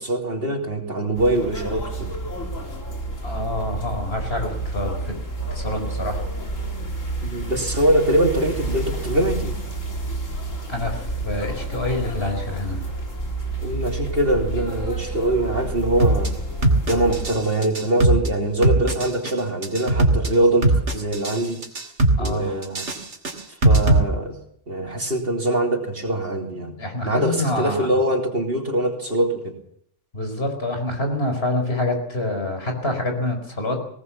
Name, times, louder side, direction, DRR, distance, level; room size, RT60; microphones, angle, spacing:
voice 1, 0.0-2.1 7.2-9.5 13.6-16.3 16.9-21.6 22.2-22.8 23.6-24.4 24.7-26.7 27.0-29.6, right 1 dB, 50° right, 3 dB, 3.1 m, -23 dB
sound 1, 1.1-17.3, right 2 dB, 90° left, 3.9 m, -30 dB
voice 2, 3.2-5.1 5.5-6.2 10.7-12.8 22.2-22.5 26.8-27.9 30.1-33.8, left 1 dB, 55° left, 4 dB, 4.8 m, -26 dB
sound 2, 16.0-16.3 16.6-17.4 17.6-18.3 18.6-19.3 19.6-20.3 20.6-21.4 21.6-22.3 22.6-24.0, right 2 dB, 65° right, 2.9 m, -18 dB
19.5 x 18.0 x 7.3 m, 0.68 s
omnidirectional pair, 1.3 m